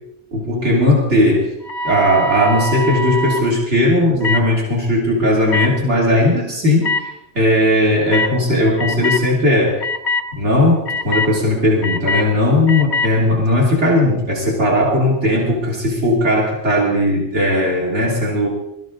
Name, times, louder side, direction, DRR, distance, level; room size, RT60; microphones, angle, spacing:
voice 1, 0.3-1.5 1.8-7.1 7.3-9.8 10.4-18.5, left 1 dB, 90° right, -4 dB, 3.4 m, -17 dB
sound 1, 1.6-3.4 4.2-4.4 5.5-5.7 6.8-7.0 8.1-8.3 8.8-9.2 9.8-10.2 10.9-11.3 11.8-12.2 12.7-13.1, left 2 dB, 70° left, 1.5 m, -22 dB
23.0 x 14.0 x 4.0 m, 0.82 s
omnidirectional pair, 1.1 m